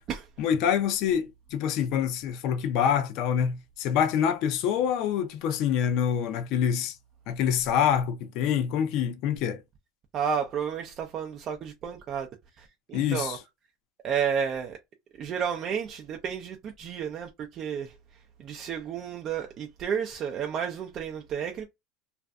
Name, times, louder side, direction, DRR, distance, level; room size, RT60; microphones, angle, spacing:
voice 1, 0.4-7.0 7.3-9.6 12.9-13.4, left 8 dB, 60° left, 0.5 m, -26 dB
voice 2, 10.1-12.3 12.6-13.4 14.0-14.8 15.2-17.9 18.4-21.6, right 7 dB, 45° right, 0.5 m, -31 dB
2.5 x 2.4 x 2.2 m
supercardioid pair, 110°, 0 cm